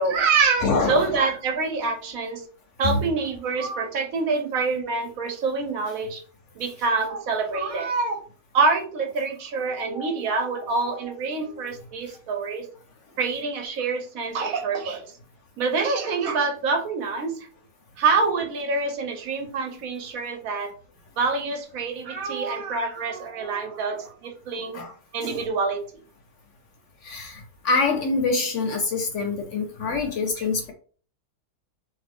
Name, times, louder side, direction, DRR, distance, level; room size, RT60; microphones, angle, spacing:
voice 1, 0.0-2.4 2.8-6.2 6.6-8.2 8.5-12.7 13.2-15.1 15.6-17.5 18.0-20.7 21.2-24.8 25.1-25.8 30.4-30.5, right 4 dB, 70° right, 4 dB, 1.0 m, -26 dB
voice 2, 0.6-1.1 2.8-3.0 24.7-24.9 25.2-25.3 27.0-30.7, left 3 dB, 65° left, 2 dB, 0.8 m, -25 dB
2.7 x 2.6 x 3.4 m, 0.42 s
omnidirectional pair, 1.6 m